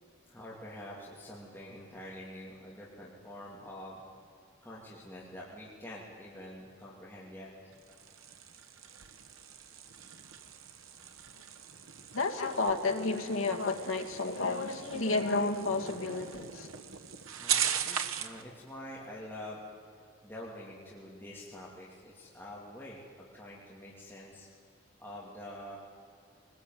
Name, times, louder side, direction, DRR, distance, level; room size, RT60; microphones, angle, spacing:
voice 1, 0.3-4.0 4.6-7.7 17.4-19.6 20.0-24.5 25.0-25.8, left 1 dB, 10° left, -5 dB, 2.7 m, -46 dB
sound 1, 7.7-18.4, right 9 dB, 85° right, 1.2 m, -39 dB
voice 2, 12.1-16.7, left 3 dB, 80° left, 3 dB, 2.1 m, -31 dB
22.0 x 19.5 x 9.4 m, 2.3 s
head